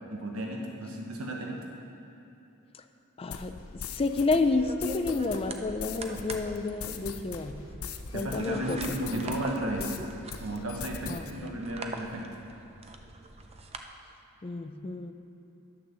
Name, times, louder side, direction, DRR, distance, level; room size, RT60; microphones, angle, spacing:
voice 1, 0.1-1.7 8.1-10.0 10.4-12.2, right 1 dB, 80° right, 0 dB, 1.1 m, -34 dB
voice 2, 3.2-7.5 8.1-8.8 9.2-9.3 11.1-11.6 14.4-15.1, left 3 dB, 25° left, 8 dB, 0.4 m, -30 dB
sound 1, 3.3-10.0 10.3-11.3, left 6 dB, 80° left, 0.6 m, -41 dB
sound 2, 4.1-13.8, right 2 dB, 30° right, 0.6 m, -44 dB
10.5 x 6.5 x 6.8 m, 2.9 s
head